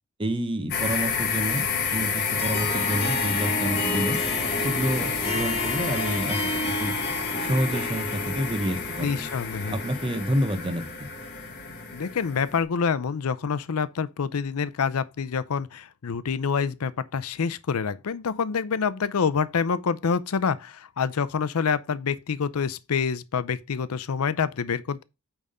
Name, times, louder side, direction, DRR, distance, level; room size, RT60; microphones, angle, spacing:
voice 1, 0.2-4.2 4.6-6.9 7.4-9.1 9.7-10.8, equal, 25° right, 1.0 m, -28 dB
sound 1, 0.7-12.6, left 5 dB, 50° left, 1.7 m, -29 dB
Harp, 2.4-10.8, left 1 dB, 25° left, 1.3 m, -33 dB
voice 2, 9.0-9.8 11.9-25.0, left 6 dB, 85° left, 0.5 m, -27 dB
8.8 x 3.6 x 5.5 m
head